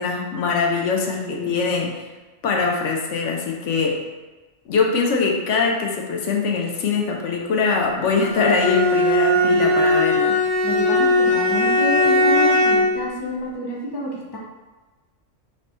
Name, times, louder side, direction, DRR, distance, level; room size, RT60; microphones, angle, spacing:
voice 1, 0.0-2.0 2.4-4.0 4.7-10.4, left 4 dB, 70° left, 0 dB, 0.9 m, -22 dB
voice 2, 0.9-1.7 9.5-9.7 10.6-14.4, left 2 dB, 30° left, -2 dB, 0.4 m, -28 dB
Bowed string instrument, 8.2-13.0, left 1 dB, 55° right, 0.4 m, -18 dB
3.4 x 3.0 x 4.0 m, 1.2 s
omnidirectional pair, 1.4 m